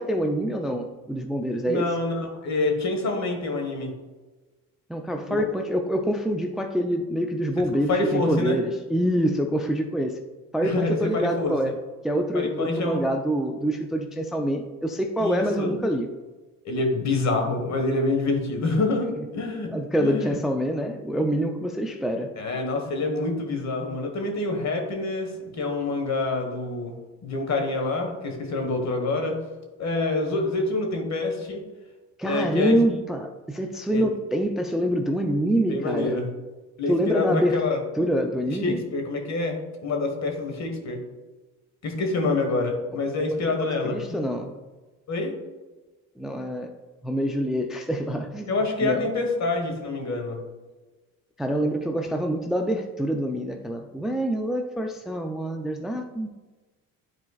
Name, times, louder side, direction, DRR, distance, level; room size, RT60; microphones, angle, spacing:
voice 1, 0.0-2.0 4.9-10.2 10.5-11.7 12.0-16.1 19.2-19.3 19.7-22.4 32.2-36.2 36.9-37.6 38.0-38.8 43.4-44.5 46.2-46.7 47.0-49.1 51.4-56.3, equal, ahead, 4 dB, 0.4 m, -26 dB
voice 2, 1.7-3.9 5.3-5.5 7.9-8.6 10.6-11.6 12.3-13.1 15.2-15.7 16.6-19.7 20.0-20.3 22.4-26.9 27.2-29.4 29.8-31.6 32.2-32.8 33.9-34.0 35.7-36.3 36.8-37.8 38.6-41.0 41.8-44.0 45.1-45.3 48.5-50.4, left 3 dB, 45° left, 3 dB, 1.5 m, -26 dB
9.6 x 4.3 x 2.4 m, 1.2 s
supercardioid pair, 85°, 37 cm